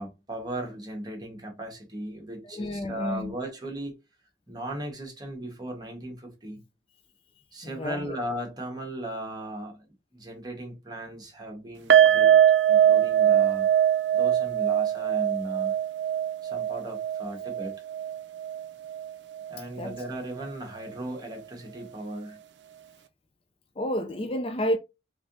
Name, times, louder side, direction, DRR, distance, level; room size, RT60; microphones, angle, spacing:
voice 1, 0.0-3.9 4.5-6.6 7.5-9.9 10.1-12.4 12.7-13.7 14.1-15.7 16.4-17.8 19.5-22.4, right 1 dB, 25° right, 1.2 m, -37 dB
voice 2, 2.4-3.3 7.6-8.2 19.8-20.0 23.8-24.8, equal, 30° left, 0.4 m, -30 dB
sound 1, 11.9-19.1 19.4-19.6 19.9-20.0, right 10 dB, 75° right, 0.5 m, -22 dB
3.6 x 3.3 x 2.6 m
head